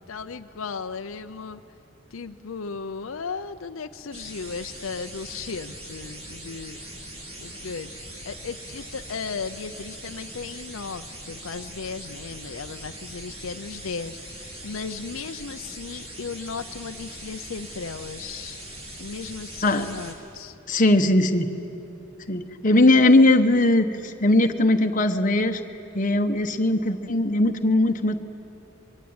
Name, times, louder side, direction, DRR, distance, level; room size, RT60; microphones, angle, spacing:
voice 1, 0.1-1.6 2.1-7.0 7.4-7.9 8.2-18.6 19.0-20.6, left 5 dB, 80° left, 8 dB, 0.6 m, -36 dB
sound 1, 4.1-20.1, right 1 dB, 30° right, 3.1 m, -41 dB
voice 2, 20.7-21.5 22.3-25.6 25.9-28.2, left 2 dB, 40° left, 6 dB, 1.1 m, -19 dB
24.0 x 23.0 x 8.8 m, 3.0 s
head